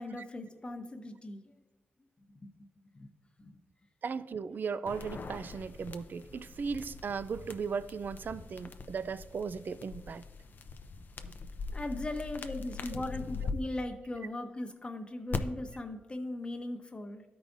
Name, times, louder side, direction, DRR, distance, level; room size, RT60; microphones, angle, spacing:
voice 1, 0.0-1.4 2.4-2.5 2.9-3.1 3.4-3.6 11.7-17.2, left 2 dB, 25° left, 3 dB, 1.0 m, -38 dB
voice 2, 4.0-10.2, right 5 dB, 55° right, 15 dB, 0.3 m, -37 dB
sound 1, 4.9-13.5 15.3-15.4, left 4 dB, 55° left, 0.5 m, -42 dB
13.0 x 4.8 x 2.6 m, 1.1 s
cardioid pair, 90°, 4 cm